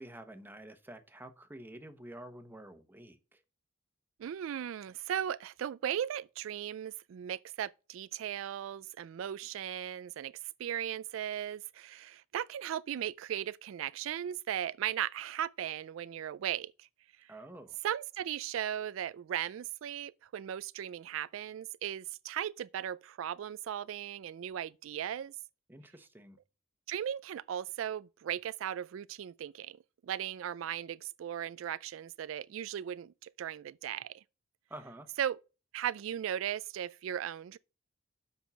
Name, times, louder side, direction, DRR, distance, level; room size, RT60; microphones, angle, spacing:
voice 1, 0.0-3.4 17.3-17.8 25.7-26.4 34.7-35.1, right 1 dB, 10° right, 1.0 m, -49 dB
voice 2, 4.2-10.3 10.6-16.9 17.2-17.3 17.8-25.3 26.9-29.8 30.0-34.2 35.2-35.4 35.7-37.6, right 10 dB, 80° right, 0.3 m, -37 dB
7.2 x 5.6 x 5.6 m
head